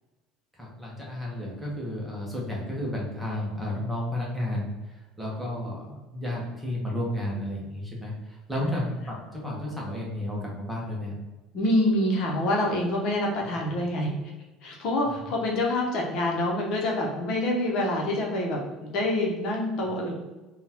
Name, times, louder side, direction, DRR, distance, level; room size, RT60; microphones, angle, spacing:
voice 1, 0.5-11.2 15.0-15.2, left 1 dB, 5° right, -4 dB, 0.9 m, -32 dB
voice 2, 11.5-14.1 14.6-20.1, left 1 dB, 50° left, -1 dB, 0.9 m, -26 dB
3.8 x 2.3 x 4.2 m, 1.1 s
cardioid pair, 155°, 0 cm